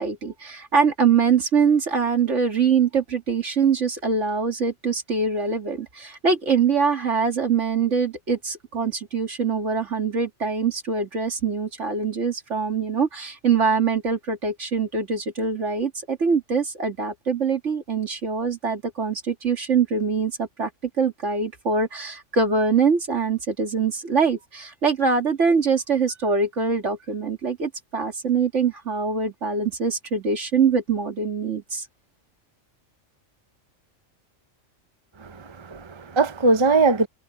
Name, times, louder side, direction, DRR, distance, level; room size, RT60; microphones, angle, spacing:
voice 1, 0.0-20.7 21.0-31.9, right 5 dB, 60° right, 2.7 m, -23 dB
voice 2, 35.2-37.1, right 3 dB, 25° right, 0.7 m, -21 dB
omnidirectional pair, 1.4 m